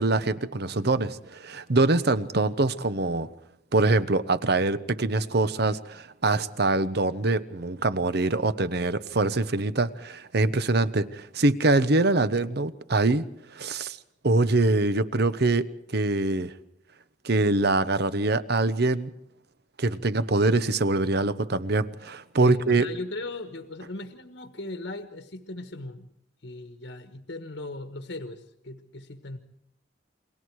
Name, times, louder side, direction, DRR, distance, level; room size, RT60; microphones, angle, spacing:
voice 1, 0.0-3.3 3.7-13.3 13.5-14.0 14.2-15.7 15.9-16.5 17.2-19.1 19.8-22.9, right 2 dB, 60° right, 14 dB, 1.0 m, -24 dB
voice 2, 22.4-26.1 26.4-29.4, left 2 dB, 70° left, 7 dB, 1.4 m, -38 dB
29.5 x 22.0 x 4.8 m, 0.76 s
head